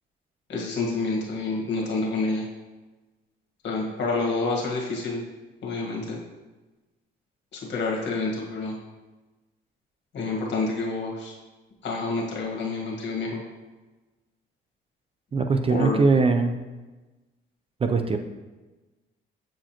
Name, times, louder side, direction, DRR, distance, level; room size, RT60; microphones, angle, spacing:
voice 1, 0.5-2.4 3.6-5.2 5.6-6.2 7.5-8.7 10.1-11.3 11.8-13.4 15.7-16.0, left 3 dB, 65° left, -1 dB, 1.5 m, -28 dB
voice 2, 15.3-16.6 17.8-18.2, right 4 dB, 30° right, 6 dB, 0.4 m, -21 dB
7.3 x 4.7 x 2.9 m, 1.2 s
cardioid pair, 90°, 20 cm